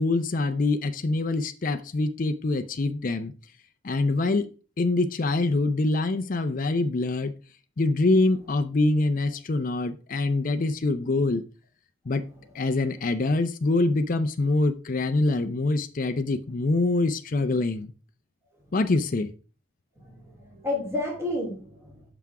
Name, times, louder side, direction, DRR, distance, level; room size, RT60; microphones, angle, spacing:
voice 1, 0.0-3.3 3.8-4.5 4.8-7.3 7.8-11.4 12.1-12.2 12.5-17.9 18.7-19.3, left 2 dB, 45° left, 8 dB, 0.5 m, -25 dB
voice 2, 20.0-22.0, left 2 dB, 15° right, 0 dB, 2.6 m, -31 dB
5.9 x 5.9 x 4.7 m, 0.36 s
head